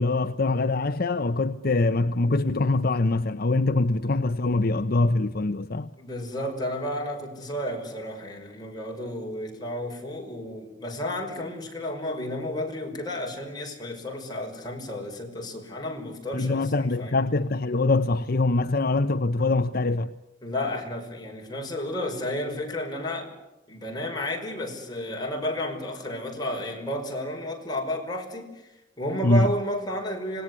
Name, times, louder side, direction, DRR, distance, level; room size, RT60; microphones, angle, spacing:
voice 1, 0.0-5.9 16.3-20.1 29.2-29.5, left 2 dB, 55° left, 0.8 m, -23 dB
voice 2, 6.0-17.2 20.4-23.3 23.7-28.5 29.0-30.4, left 1 dB, 25° left, 5.8 m, -32 dB
26.0 x 19.5 x 9.7 m
head